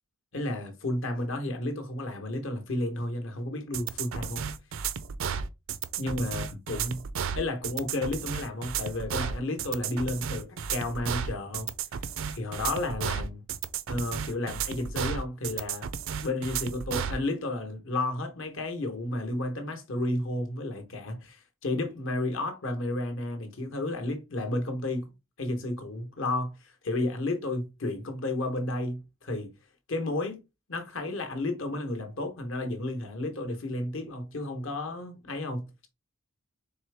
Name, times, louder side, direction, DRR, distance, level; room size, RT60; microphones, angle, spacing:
voice 1, 0.3-4.5 6.0-7.0 7.3-11.7 12.3-13.4 13.9-15.9 16.2-25.1 25.4-29.5 29.9-30.4 30.7-35.7, left 2 dB, 65° left, 1.0 m, -32 dB
sound 1, 3.7-17.2, right 7 dB, 65° right, 0.4 m, -33 dB
4.3 x 3.4 x 3.3 m
head